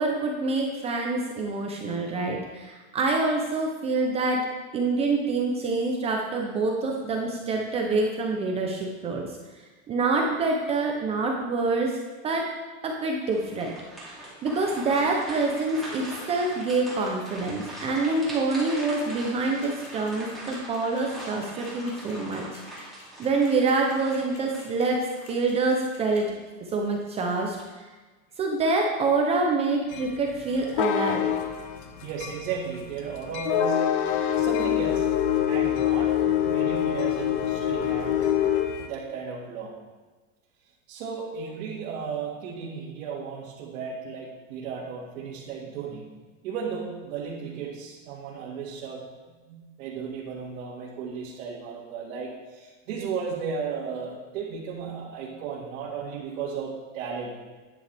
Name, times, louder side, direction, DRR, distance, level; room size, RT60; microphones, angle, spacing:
voice 1, 0.0-4.5 4.7-9.3 9.9-12.0 12.2-12.5 12.8-13.7 14.0-14.1 14.4-22.6 23.2-26.3 26.7-27.8 28.4-31.2, right 3 dB, 15° right, 1 dB, 0.4 m, -26 dB
sound 1, 13.3-25.9 26.4-26.5 27.1-27.6, right 1 dB, ahead, 2.5 m, -41 dB
sound 2, 19.6-26.2, left 4 dB, 35° left, 2.5 m, -51 dB
sound 3, 29.9-38.9, left 10 dB, 55° left, 0.9 m, -25 dB
voice 2, 32.0-34.1 34.4-38.2 38.8-39.7 40.9-46.0 46.4-49.0 49.5-57.4, right 6 dB, 75° right, -7 dB, 2.0 m, -35 dB
10.0 x 8.8 x 3.3 m, 1.3 s
supercardioid pair, 170°, 41 cm